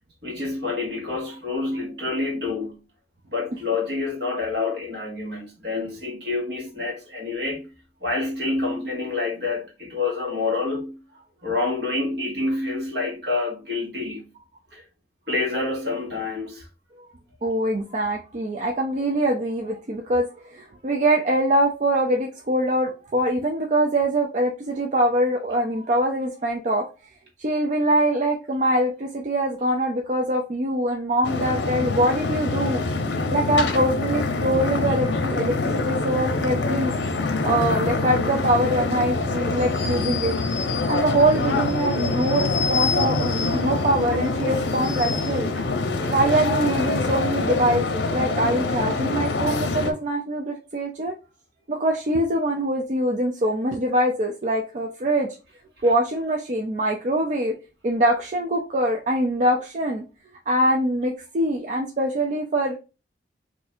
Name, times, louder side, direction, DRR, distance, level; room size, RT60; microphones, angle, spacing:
voice 1, 0.2-2.8 3.2-7.7 8.0-11.0 11.4-14.2 14.7-14.8 15.3-16.7 46.0-46.2, left 3 dB, 65° right, 1.3 m, -27 dB
voice 2, 17.4-26.8 27.4-32.8 33.3-36.9 37.4-40.4 40.9-45.5 46.1-51.1 51.7-55.3 55.8-57.5 57.8-60.0 60.5-62.8, right 1 dB, 45° right, 0.4 m, -23 dB
sound 1, 31.2-49.9, left 3 dB, 85° left, 0.6 m, -25 dB
2.6 x 2.4 x 4.1 m
head